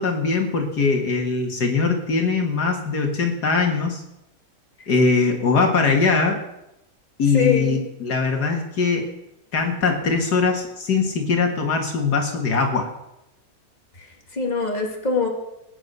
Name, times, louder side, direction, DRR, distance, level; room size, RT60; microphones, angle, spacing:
voice 1, 0.0-4.0 4.9-6.4 7.2-9.1 9.5-12.9, left 4 dB, 70° left, 3 dB, 2.3 m, -21 dB
voice 2, 7.3-7.8 14.0-14.1 14.3-15.3, left 5 dB, 25° left, 1 dB, 2.8 m, -23 dB
20.0 x 9.7 x 6.8 m, 0.87 s
omnidirectional pair, 1.8 m